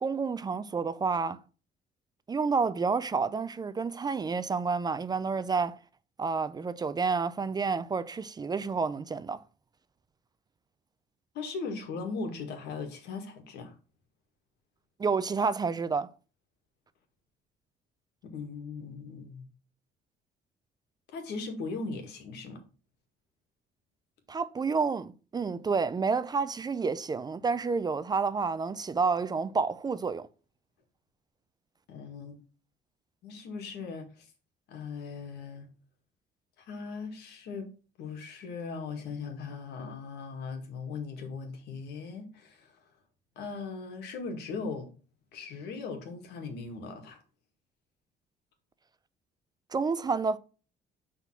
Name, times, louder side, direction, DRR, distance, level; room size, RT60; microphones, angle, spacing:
voice 1, 0.0-1.4 2.3-5.8 6.2-9.4 15.0-16.1 24.3-30.3 49.7-50.4, right 4 dB, 25° right, 0.4 m, -29 dB
voice 2, 11.3-13.8 18.2-19.4 21.1-22.6 31.9-32.4 33.2-34.3 34.7-35.7 36.6-37.7 38.0-42.7 43.4-44.9 45.3-47.2, left 4 dB, 80° left, 1.9 m, -39 dB
5.8 x 3.7 x 5.7 m
cardioid pair, 110°, 17 cm